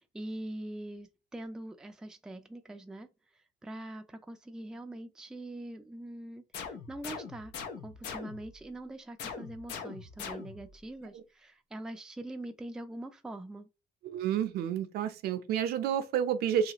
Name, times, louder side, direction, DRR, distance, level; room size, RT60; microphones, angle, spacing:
voice 1, 0.0-3.1 3.6-7.5 7.8-13.7, right 1 dB, 5° right, 0.3 m, -43 dB
sound 1, 6.5-8.6 9.2-10.8, left 6 dB, 80° left, 0.6 m, -42 dB
voice 2, 14.0-16.7, right 9 dB, 70° right, 0.5 m, -30 dB
2.8 x 2.4 x 2.8 m
cardioid pair, 110°, 17 cm